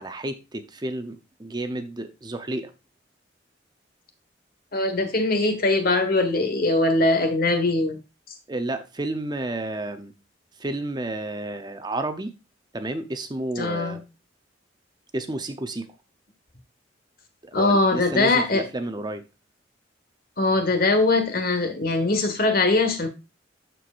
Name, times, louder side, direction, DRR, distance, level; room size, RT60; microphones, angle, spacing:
voice 1, 0.0-2.7 8.5-10.1 10.6-12.3 12.7-14.0 15.1-15.9 17.4-19.2, right 2 dB, 25° right, 0.7 m, -31 dB
voice 2, 4.7-8.0 13.6-14.0 17.5-18.7 20.4-23.1, left 2 dB, 55° left, 1.5 m, -21 dB
13.0 x 4.7 x 2.5 m
head